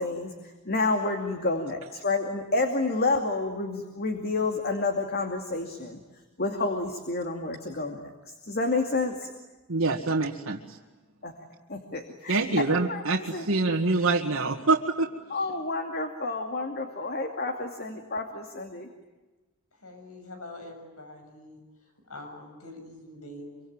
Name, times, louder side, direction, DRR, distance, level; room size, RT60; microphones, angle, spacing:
voice 1, 0.0-6.0 6.4-9.3 11.2-11.3 11.7-12.6 12.9-13.6 15.3-18.9, left 3 dB, 45° left, 5 dB, 2.5 m, -29 dB
voice 2, 9.7-10.6 12.3-15.1, right 3 dB, 65° right, -2 dB, 1.9 m, -25 dB
voice 3, 19.8-21.6 22.1-23.5, left 1 dB, 80° left, 5 dB, 6.9 m, -44 dB
26.0 x 25.0 x 9.0 m, 1.2 s
head